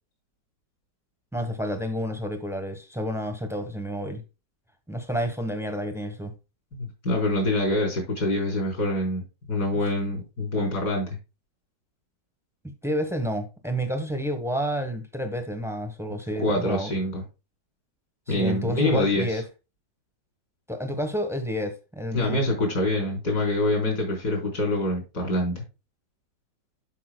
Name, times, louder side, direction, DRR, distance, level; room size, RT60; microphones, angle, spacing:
voice 1, 1.3-4.2 4.9-6.3 12.8-16.9 18.3-19.4 20.7-22.4, equal, ahead, 1.1 m, -30 dB
voice 2, 6.8-9.2 9.5-11.1 16.3-17.2 18.3-19.4 22.1-25.6, left 1 dB, 65° left, 4.6 m, -25 dB
12.0 x 5.5 x 2.3 m
omnidirectional pair, 1.9 m